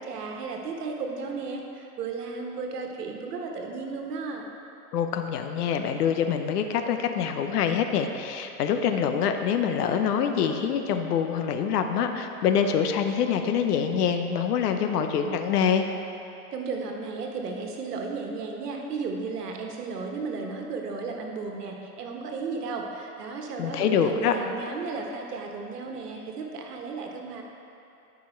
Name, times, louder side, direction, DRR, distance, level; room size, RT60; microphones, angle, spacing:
voice 1, 0.0-4.5 16.5-27.4, right 4 dB, 85° right, 2 dB, 1.4 m, -34 dB
voice 2, 4.9-15.8 23.6-24.4, left 7 dB, 80° left, 6 dB, 0.9 m, -25 dB
12.0 x 5.5 x 4.5 m, 2.8 s
hypercardioid pair, 120°, 46 cm